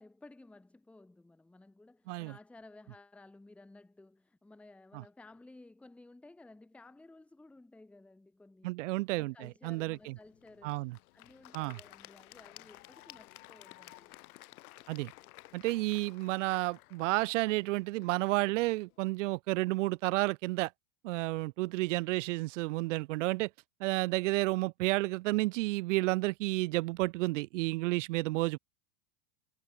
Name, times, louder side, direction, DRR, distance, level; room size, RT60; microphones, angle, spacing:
voice 1, 0.0-8.8 9.1-14.1, left 2 dB, 5° left, 1.1 m, -56 dB
voice 2, 8.6-10.1 10.6-11.0 11.5-11.8 14.9-15.1 15.5-20.7 21.0-23.5 23.8-28.6, right 21 dB, 50° right, 0.7 m, -31 dB
Applause / Crowd, 9.9-19.0, left 18 dB, 60° left, 1.8 m, -55 dB
supercardioid pair, 175°, 49 cm